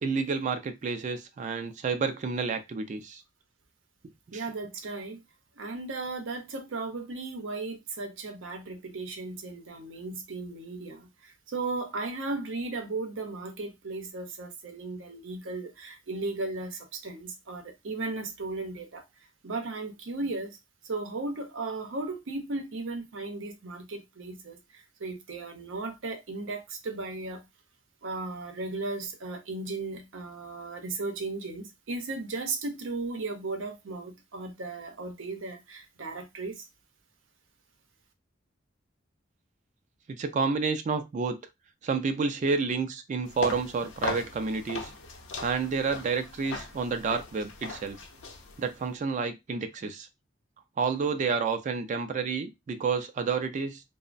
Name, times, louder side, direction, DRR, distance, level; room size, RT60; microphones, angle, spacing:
voice 1, 0.0-3.2 4.3-4.4 40.1-41.4 41.8-44.9 45.4-48.0 48.6-50.1 50.8-53.8, right 5 dB, 40° right, 0.3 m, -30 dB
voice 2, 4.3-5.2 5.6-19.0 19.4-20.6 20.8-27.4 28.0-36.6, right 3 dB, 85° right, 0.6 m, -36 dB
sound 1, 43.2-48.9, left 3 dB, 80° left, 0.6 m, -39 dB
2.9 x 2.0 x 2.5 m
head